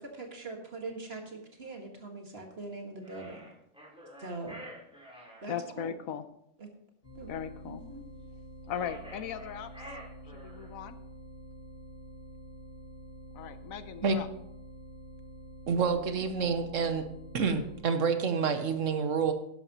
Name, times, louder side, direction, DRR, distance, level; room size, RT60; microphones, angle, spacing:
voice 1, 0.0-3.5 4.2-4.6 5.4-5.9 6.6-6.7 7.2-7.3 7.7-8.0, right 3 dB, 45° right, 2 dB, 1.9 m, -42 dB
sound 1, 3.0-5.4 8.6-10.8, equal, 5° right, 3.6 m, -49 dB
voice 2, 5.5-6.2 7.3-7.8 8.7-9.7 10.3-11.0 13.3-14.3, left 8 dB, 75° left, 12 dB, 1.1 m, -38 dB
sound 2, 7.0-17.8, right 1 dB, 40° left, 1.7 m, -48 dB
voice 3, 15.7-17.0 17.3-19.3, right 5 dB, 65° right, 8 dB, 1.2 m, -28 dB
12.0 x 11.0 x 2.9 m, 0.75 s
omnidirectional pair, 1.5 m